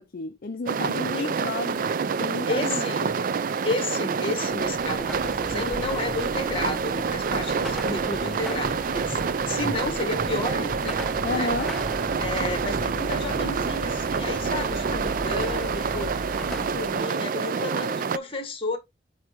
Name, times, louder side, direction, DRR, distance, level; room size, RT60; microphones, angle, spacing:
voice 1, 0.0-1.9 2.2-3.1 11.2-11.7, left 3 dB, 55° left, 0.5 m, -32 dB
sound 1, 0.7-18.2, right 5 dB, 50° right, 0.4 m, -27 dB
voice 2, 1.1-1.5 2.5-3.0 3.6-9.2 9.5-11.0 11.3-11.5 12.2-16.3 16.6-18.8, left 2 dB, 30° left, 1.5 m, -32 dB
Car passing by / Traffic noise roadway noise / Engine, 4.4-17.1, equal, ahead, 0.7 m, -36 dB
7.9 x 2.9 x 4.5 m
head